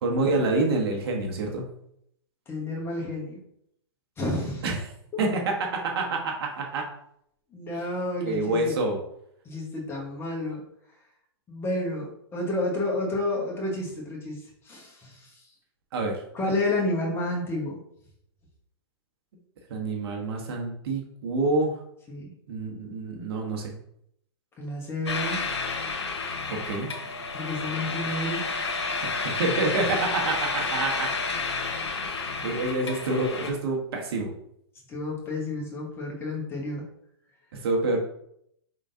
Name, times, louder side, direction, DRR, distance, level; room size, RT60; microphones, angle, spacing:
voice 1, 0.0-1.6 4.6-4.8 5.2-6.9 8.2-9.0 15.9-16.2 19.7-21.8 22.5-23.7 26.5-26.9 29.0-31.1 32.0-34.3 37.6-38.0, right 2 dB, 60° right, 1 dB, 1.2 m, -27 dB
voice 2, 2.5-3.4 4.2-4.6 7.5-8.8 9.4-10.6 11.5-15.5 16.3-17.8 22.1-22.3 24.6-25.4 27.3-28.5 34.9-36.9, left 1 dB, 15° left, -2 dB, 1.2 m, -30 dB
sound 1, 25.1-33.5, left 4 dB, 90° left, 0.9 m, -30 dB
5.1 x 3.8 x 2.7 m, 0.73 s
hypercardioid pair, 130°, 14 cm